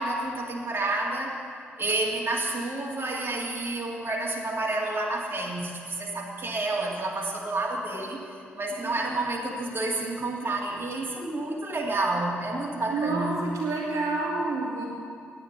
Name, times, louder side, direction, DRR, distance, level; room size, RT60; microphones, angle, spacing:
voice 1, 0.0-1.4 1.8-8.3 8.5-13.5, right 2 dB, 40° right, -2 dB, 2.3 m, -29 dB
voice 2, 12.9-14.9, right 3 dB, 65° right, -4 dB, 2.2 m, -28 dB
9.8 x 9.0 x 7.9 m, 2.3 s
hypercardioid pair, 40°, 6 cm